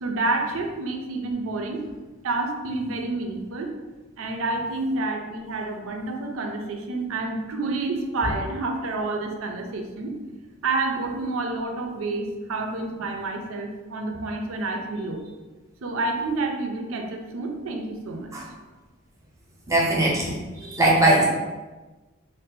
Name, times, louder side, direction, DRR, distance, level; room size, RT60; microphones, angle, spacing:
voice 1, 0.0-1.8 2.2-3.7 4.2-10.2 10.6-15.2 15.8-18.3, right 2 dB, 75° right, 4 dB, 0.5 m, -29 dB
voice 2, 19.7-21.2, right 1 dB, 15° right, -4 dB, 0.6 m, -20 dB
2.6 x 2.3 x 3.7 m, 1.2 s
head